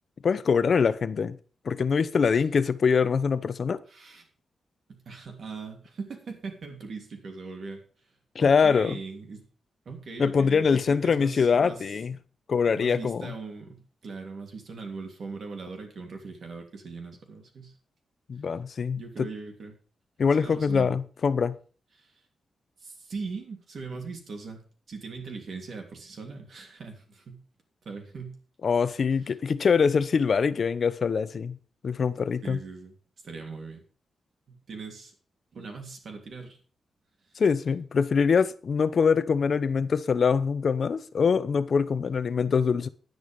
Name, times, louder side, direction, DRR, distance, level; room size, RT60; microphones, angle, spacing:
voice 1, 0.2-1.4 1.6-3.8 8.3-9.0 10.2-12.2 12.5-13.3 18.3-19.3 20.2-21.5 28.6-31.6 31.8-32.6 37.4-42.9, left 5 dB, 45° left, 0.8 m, -24 dB
voice 2, 3.9-4.3 4.9-7.8 8.4-9.4 9.8-11.8 12.7-17.7 19.0-19.7 20.4-20.9 22.0-22.1 22.8-27.4 27.8-28.4 32.4-32.9 33.2-33.8 34.5-35.1 35.5-36.6, right 4 dB, 50° right, 3.0 m, -40 dB
10.5 x 9.8 x 5.3 m
wide cardioid pair, 160°, 0 cm